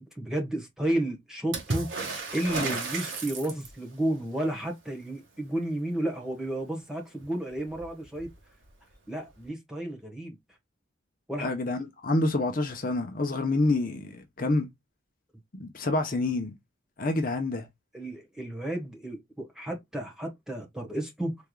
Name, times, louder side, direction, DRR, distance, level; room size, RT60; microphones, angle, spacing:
voice 1, 0.1-1.9 2.3-8.3 9.1-10.4 11.3-11.5 17.5-17.6 17.9-21.4, right 1 dB, 5° right, 1.2 m, -32 dB
Water / Splash splatter, 1.5-3.9 7.2-7.3 7.6-8.3 9.4-9.5, right 3 dB, 70° right, 1.6 m, -33 dB
voice 2, 11.4-14.7 15.5-16.5 17.0-17.7, left 2 dB, 45° left, 0.7 m, -28 dB
4.7 x 3.5 x 2.2 m
head